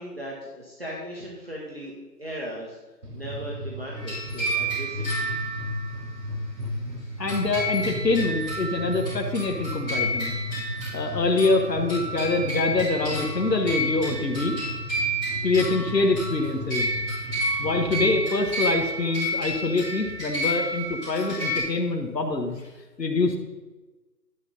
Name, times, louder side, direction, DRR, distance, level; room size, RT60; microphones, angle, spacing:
voice 1, 0.0-2.8 3.1-5.3, equal, 35° right, -3 dB, 1.3 m, -37 dB
sound 1, 3.0-18.2, left 1 dB, 65° right, 1.6 m, -35 dB
sound 2, 3.9-5.9 7.3-21.6, equal, 5° left, 3.0 m, -30 dB
voice 2, 7.2-10.3 10.9-14.5 15.4-16.9 17.6-22.6 23.0-23.4, left 3 dB, 75° left, 3 dB, 1.4 m, -25 dB
11.0 x 6.9 x 4.1 m, 1.2 s
figure-of-eight pair, 175°, 49 cm